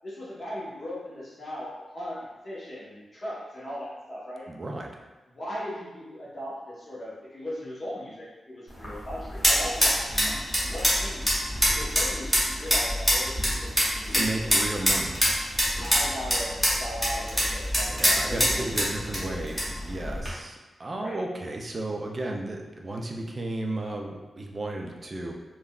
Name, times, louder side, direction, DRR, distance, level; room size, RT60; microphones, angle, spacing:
voice 1, 0.0-1.7 1.9-4.5 5.3-11.4 11.7-13.7 14.0-14.3 15.8-18.6 19.2-19.4 21.0-21.2, equal, 35° left, -8 dB, 0.8 m, -38 dB
voice 2, 4.5-4.9 14.1-15.2 18.0-25.3, right 2 dB, 30° right, 1 dB, 0.3 m, -33 dB
sound 1, 8.7-20.3, equal, 5° left, 0.8 m, -26 dB
3.5 x 2.1 x 2.2 m, 1.1 s
wide cardioid pair, 160°, 0 cm